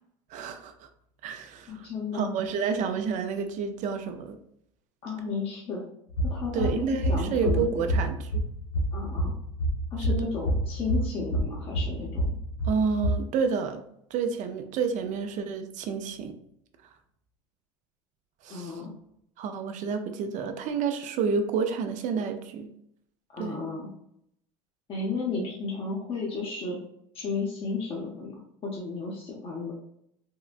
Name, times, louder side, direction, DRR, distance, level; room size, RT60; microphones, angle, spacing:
voice 1, 0.3-0.7 1.2-1.9 2.1-4.4 6.5-8.3 10.1-10.2 12.7-13.8 14.1-16.3 18.4-18.7 19.4-22.7 23.4-23.6, right 5 dB, 50° right, 7 dB, 0.5 m, -29 dB
voice 2, 1.7-2.3 5.0-5.8 6.2-8.0 8.9-9.3 9.9-12.4 18.5-18.9 23.3-23.9 24.9-26.8 27.1-29.7, left 4 dB, 35° left, -2 dB, 0.7 m, -33 dB
sound 1, 6.1-13.1, equal, 85° left, 0.8 m, -28 dB
3.7 x 2.1 x 2.4 m, 0.74 s
supercardioid pair, 100°, 16 cm